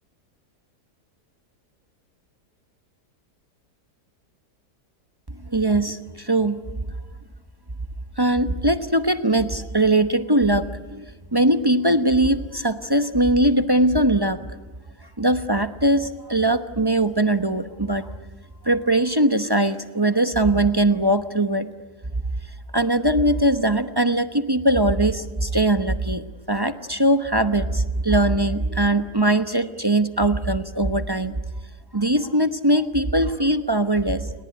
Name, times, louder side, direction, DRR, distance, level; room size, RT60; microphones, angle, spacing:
voice 1, 5.4-6.6 8.2-14.5 15.2-18.1 18.6-21.7 22.7-31.4 31.9-34.2, right 1 dB, 20° right, 9 dB, 0.8 m, -21 dB
29.5 x 20.0 x 9.5 m, 1.3 s
omnidirectional pair, 1.7 m